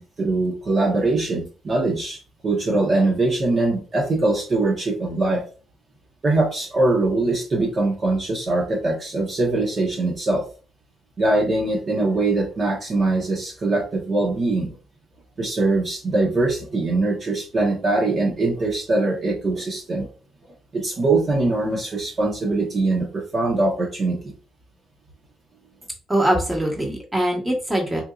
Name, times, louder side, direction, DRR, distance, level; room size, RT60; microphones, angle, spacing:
voice 1, 0.0-5.4 6.2-10.5 11.2-14.7 15.4-20.1 20.7-24.3, right 2 dB, 45° right, -1 dB, 1.1 m, -22 dB
voice 2, 26.1-28.0, right 1 dB, 10° right, 0 dB, 1.3 m, -22 dB
4.4 x 2.6 x 2.4 m, 0.36 s
cardioid pair, 90°, 0 cm